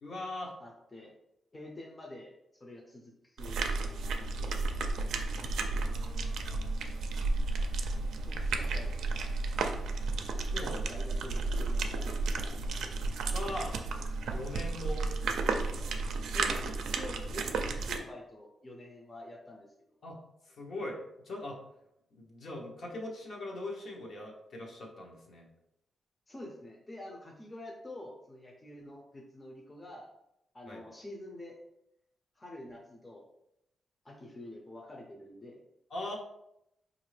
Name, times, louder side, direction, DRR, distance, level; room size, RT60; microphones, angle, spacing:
voice 1, 0.0-0.5 5.7-6.7 10.5-10.9 13.3-13.8 14.3-15.1 20.0-20.2 20.4-21.0 21.2-21.6 22.1-25.5 30.7-30.8 35.9-36.2, left 1 dB, 60° left, -1 dB, 0.9 m, -41 dB
voice 2, 0.6-1.1 1.5-2.3 2.6-4.7 7.8-9.4 10.6-13.0 16.2-19.7 26.3-30.1 30.5-31.5 32.4-33.2 34.0-35.6, left 1 dB, 20° left, 0 dB, 0.6 m, -47 dB
sound 1, 3.4-18.0, right 3 dB, 85° right, 0.4 m, -33 dB
4.9 x 2.6 x 3.2 m, 0.83 s
cardioid pair, 125°, 0 cm